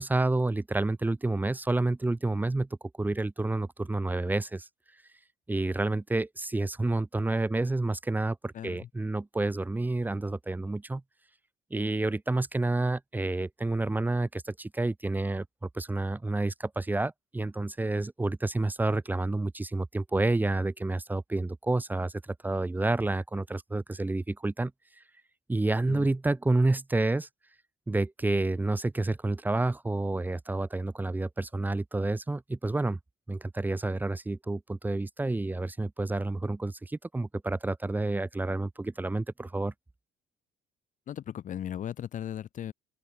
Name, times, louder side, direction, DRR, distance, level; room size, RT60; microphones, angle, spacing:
voice 1, 0.0-2.7 3.0-4.7 5.5-11.0 11.7-15.5 15.7-22.1 22.4-24.7 25.5-27.3 27.9-33.0 33.3-39.7, right 2 dB, 10° right, 1.8 m, -29 dB
voice 2, 8.5-8.9 25.9-26.1 41.1-42.7, left 10 dB, 40° left, 1.6 m, -37 dB
open air
cardioid pair, 180°, 20 cm